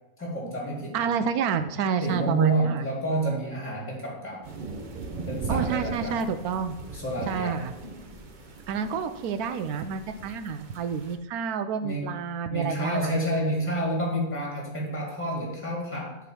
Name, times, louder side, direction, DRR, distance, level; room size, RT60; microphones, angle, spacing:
voice 1, 0.2-1.1 2.0-4.4 5.3-6.2 6.9-7.6 11.8-12.1 12.5-16.2, right 1 dB, 10° left, -2 dB, 2.0 m, -29 dB
voice 2, 0.9-2.8 5.5-6.8 7.2-7.7 8.7-13.1, right 6 dB, 80° right, 9 dB, 1.1 m, -29 dB
sound 1, 4.4-11.2, right 4 dB, 40° right, 0.7 m, -39 dB
8.3 x 3.8 x 5.9 m, 0.94 s
omnidirectional pair, 1.6 m